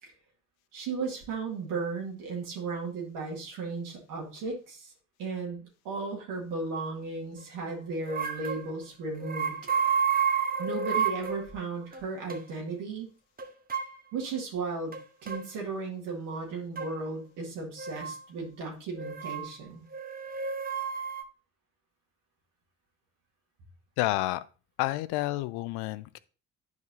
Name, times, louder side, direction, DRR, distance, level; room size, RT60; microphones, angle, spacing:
voice 1, 0.7-4.9 5.2-9.6 10.6-13.1 14.1-14.9 15.2-19.9, right 4 dB, 70° right, 2.0 m, -35 dB
sound 1, 8.0-8.7 9.2-11.5 11.9-12.0 12.3-12.4 13.4-13.9 14.9-15.5 16.8-16.9 17.8-18.2 19.0-19.5 19.9-21.2, right 7 dB, 20° right, 1.0 m, -30 dB
voice 2, 24.0-24.4 24.8-26.2, left 17 dB, 65° left, 0.6 m, -29 dB
10.5 x 4.8 x 2.7 m
hypercardioid pair, 45°, 41 cm